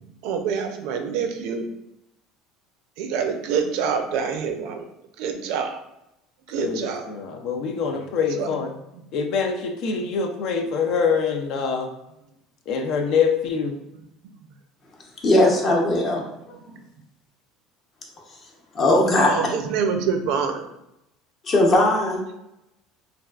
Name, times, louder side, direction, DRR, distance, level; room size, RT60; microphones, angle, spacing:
voice 1, 0.2-1.7 3.0-4.9 5.2-5.8 6.5-7.1 8.3-8.8 16.0-16.1 16.7-16.8 19.2-20.7, right 6 dB, 70° right, 5 dB, 0.4 m, -26 dB
voice 2, 6.6-8.7 9.1-11.9 12.7-13.8, left 6 dB, 60° left, 4 dB, 0.4 m, -24 dB
voice 3, 15.2-16.5 18.7-19.3 21.4-22.2, left 1 dB, 40° left, 0 dB, 0.7 m, -19 dB
3.3 x 2.3 x 2.3 m, 0.85 s
supercardioid pair, 110°, 0 cm